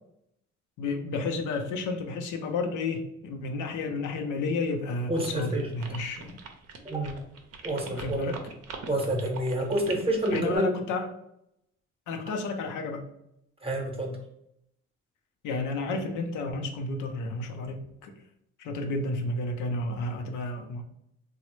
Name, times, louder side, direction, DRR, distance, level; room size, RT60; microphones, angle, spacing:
voice 1, 0.8-6.4 7.9-8.4 10.3-11.1 12.1-13.1 15.4-18.2 18.6-20.8, left 3 dB, 85° left, 5 dB, 0.5 m, -31 dB
voice 2, 5.1-5.7 6.8-7.2 7.6-8.3 8.9-10.7 13.6-14.2, right 1 dB, 20° right, 1 dB, 0.8 m, -28 dB
sound 1, 5.2-10.6, right 5 dB, 55° right, 0.6 m, -43 dB
3.0 x 2.0 x 3.0 m, 0.79 s
cardioid pair, 90°, 30 cm